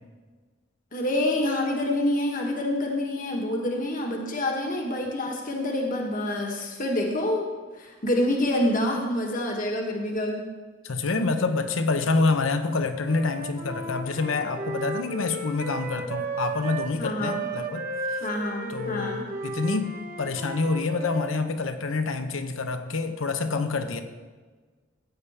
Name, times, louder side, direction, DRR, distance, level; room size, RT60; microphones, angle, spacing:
voice 1, 0.9-7.5 7.8-10.4 17.0-17.5 18.2-19.3, left 1 dB, 45° left, 0 dB, 1.4 m, -27 dB
voice 2, 10.8-18.3 18.7-19.2 19.4-24.0, left 3 dB, 80° left, 8 dB, 0.9 m, -27 dB
Wind instrument woodwind instrument, 13.0-16.9 17.2-21.5, right 2 dB, 45° right, 1.1 m, -34 dB
15.5 x 8.4 x 3.5 m, 1.4 s
head